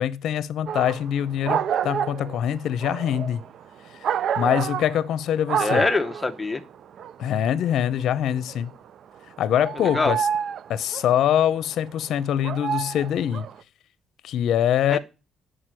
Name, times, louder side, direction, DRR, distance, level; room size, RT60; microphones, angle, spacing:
voice 1, 0.0-3.4 4.4-5.9 7.2-8.7 9.4-10.2 10.7-13.5 14.2-15.0, left 10 dB, 75° left, 0.7 m, -24 dB
sound 1, 0.7-1.1 1.5-5.2 5.5-6.4 6.7-8.7 9.2-11.2 12.1-13.6, right 8 dB, 65° right, 0.5 m, -28 dB
voice 2, 5.6-6.6 9.8-10.1 14.9-15.0, left 3 dB, 20° left, 0.9 m, -24 dB
9.9 x 5.0 x 7.6 m
cardioid pair, 90°, 0 cm